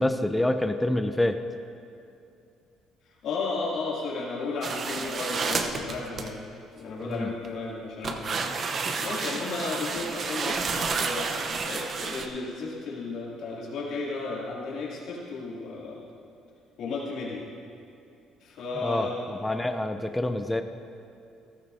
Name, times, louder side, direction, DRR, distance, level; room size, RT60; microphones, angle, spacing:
voice 1, 0.0-1.4 7.1-7.3 18.8-20.6, left 1 dB, 10° left, 8 dB, 0.5 m, -27 dB
voice 2, 3.2-6.4 6.8-8.4 9.0-11.3 11.7-16.0 16.8-17.4 18.4-19.2, left 3 dB, 70° left, -5 dB, 2.7 m, -33 dB
sound 1, 4.6-6.3 7.0-7.5 8.0-12.3, right 4 dB, 45° right, 0.9 m, -30 dB
14.5 x 13.5 x 2.8 m, 2.6 s
supercardioid pair, 85°, 0 cm